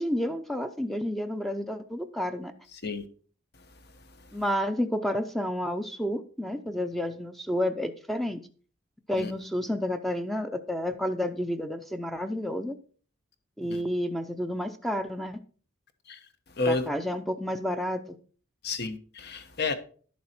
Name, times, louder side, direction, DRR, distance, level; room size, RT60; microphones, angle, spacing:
voice 1, 0.0-2.5 4.3-8.4 9.1-12.8 13.6-15.4 16.7-18.0, equal, ahead, 0.6 m, -30 dB
voice 2, 16.6-16.9 18.6-19.7, left 3 dB, 55° left, 1.1 m, -30 dB
11.5 x 7.3 x 4.4 m
head